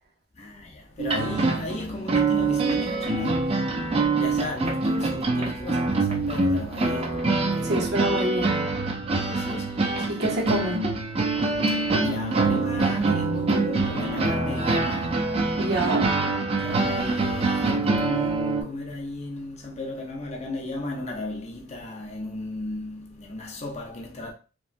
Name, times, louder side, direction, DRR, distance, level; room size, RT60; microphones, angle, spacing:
voice 1, 0.3-8.0 9.2-10.4 11.7-15.6 16.6-24.3, left 2 dB, 35° left, 0.6 m, -35 dB
sound 1, 1.0-18.6, right 3 dB, 30° right, 0.3 m, -25 dB
voice 2, 7.6-8.7 10.1-10.9 15.6-16.1, right 1 dB, 55° right, 0.7 m, -27 dB
2.9 x 2.1 x 2.5 m
head